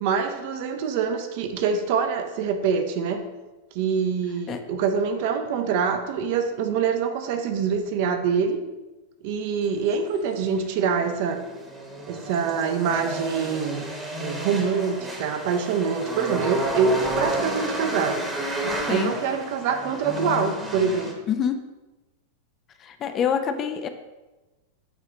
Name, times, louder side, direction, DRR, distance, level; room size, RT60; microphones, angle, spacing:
voice 1, 0.0-3.2 3.7-8.6 9.2-11.4 12.1-13.9 14.2-18.3 18.9-21.1, right 6 dB, 50° right, 6 dB, 0.7 m, -25 dB
sound 1, 9.7-21.1, right 1 dB, 10° right, 1.1 m, -31 dB
voice 2, 21.3-21.6 22.8-23.9, left 7 dB, 30° left, 8 dB, 0.4 m, -26 dB
8.1 x 3.1 x 3.8 m, 1.1 s
figure-of-eight pair, 90°, 0 cm